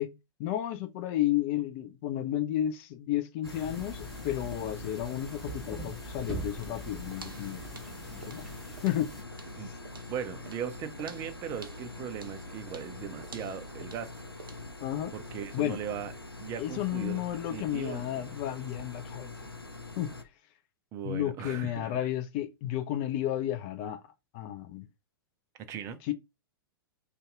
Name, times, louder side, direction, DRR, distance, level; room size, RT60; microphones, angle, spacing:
voice 1, 0.0-7.7 8.3-8.5 8.8-9.1 14.8-15.1 15.5-15.8 16.6-19.5 20.0-20.1 21.0-24.0 24.3-24.9 26.0-26.1, left 12 dB, 35° left, 0.4 m, -32 dB
sound 1, 3.4-20.2, left 3 dB, 90° left, 0.5 m, -44 dB
sound 2, 3.4-9.2, right 2 dB, ahead, 0.8 m, -43 dB
sound 3, 6.6-14.8, right 4 dB, 70° right, 0.6 m, -51 dB
voice 2, 10.1-14.1 15.1-16.1 16.4-17.2 17.5-18.3 20.9-21.9 25.6-26.0, right 8 dB, 25° right, 0.4 m, -38 dB
2.6 x 2.3 x 3.5 m
figure-of-eight pair, 105°, 12 cm